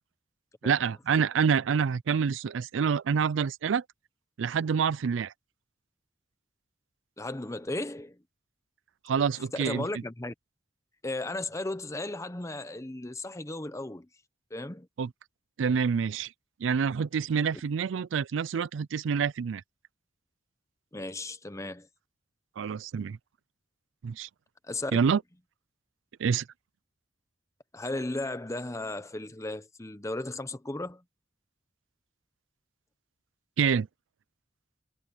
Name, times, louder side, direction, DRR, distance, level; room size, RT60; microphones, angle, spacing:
voice 1, 0.6-3.8 4.4-5.3 9.1-9.8 15.0-15.1 15.6-16.3 16.6-19.6 22.6-23.2 24.0-24.3 24.9-25.2 26.2-26.5 33.6-33.9, right 6 dB, 85° right, 0.4 m, -27 dB
voice 2, 7.2-8.2 9.5-10.3 11.0-14.1 14.5-14.9 20.9-21.9 24.7-25.0 27.7-31.0, left 2 dB, 15° left, 0.9 m, -35 dB
head